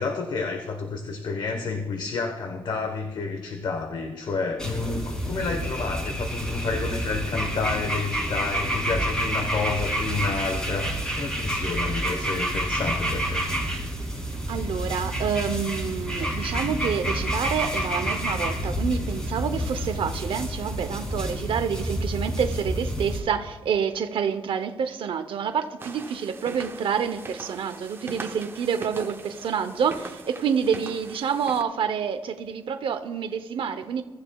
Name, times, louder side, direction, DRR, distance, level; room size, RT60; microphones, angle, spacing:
voice 1, 0.0-13.4, left 4 dB, 55° left, 4 dB, 1.1 m, -30 dB
sound 1, 4.6-23.2, equal, 10° left, 2.5 m, -28 dB
voice 2, 14.5-34.0, right 7 dB, 70° right, 8 dB, 0.7 m, -28 dB
sound 2, 25.8-31.6, right 3 dB, 25° right, 0.7 m, -41 dB
23.0 x 13.0 x 2.3 m, 1.3 s
wide cardioid pair, 175°, 9 cm